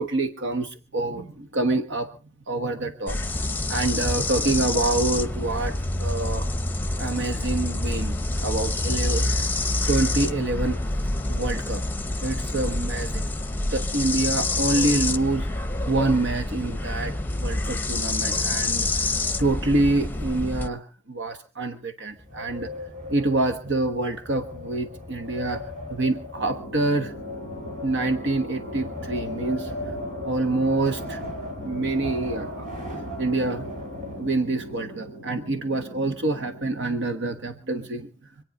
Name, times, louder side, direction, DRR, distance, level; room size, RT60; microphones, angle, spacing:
voice 1, 0.0-2.1 2.5-3.3 3.7-6.5 7.0-8.2 8.4-9.3 9.9-10.8 11.3-11.8 12.2-13.2 13.7-19.1 19.4-22.7 23.1-25.6 25.9-27.1 27.8-29.7 30.2-31.2 31.6-32.7 33.2-33.6 34.2-38.1, right 2 dB, 60° right, 7 dB, 1.2 m, -26 dB
sound 1, 3.1-20.7, left 2 dB, 10° left, 0.9 m, -27 dB
Wind, 22.1-34.7, left 2 dB, 40° right, 4.9 m, -38 dB
sound 2, 26.4-36.7, equal, 85° right, 7.2 m, -39 dB
26.0 x 9.2 x 5.2 m, 0.39 s
head